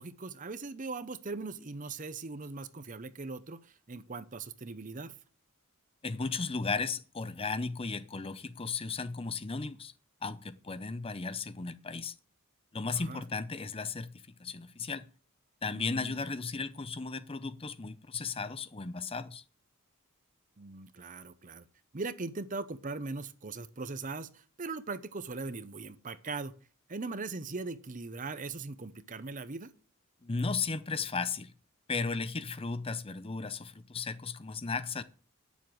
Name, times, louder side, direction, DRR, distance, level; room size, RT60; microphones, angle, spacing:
voice 1, 0.0-5.1 12.9-13.2 15.7-16.2 20.6-21.6 21.9-26.5 26.9-29.7, right 3 dB, 35° right, 0.7 m, -40 dB
voice 2, 6.0-9.9 10.2-12.2 12.7-15.1 15.6-19.4 30.2-31.5 31.9-35.0, left 4 dB, 25° left, 0.6 m, -35 dB
10.5 x 7.2 x 7.7 m
head